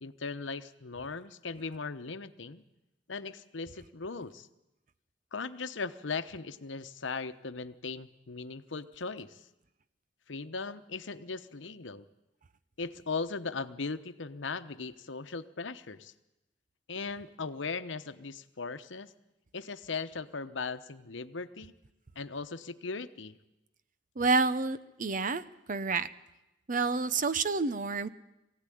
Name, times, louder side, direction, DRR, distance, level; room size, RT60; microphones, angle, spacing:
voice 1, 0.0-2.6 3.1-4.5 5.3-9.4 10.3-12.0 12.8-16.1 16.9-19.1 19.5-21.7 22.2-23.4, left 4 dB, 80° left, 11 dB, 1.0 m, -38 dB
voice 2, 24.2-25.4 25.7-26.1 26.7-28.1, right 4 dB, 45° right, 14 dB, 0.8 m, -28 dB
22.0 x 16.0 x 10.0 m, 0.95 s
head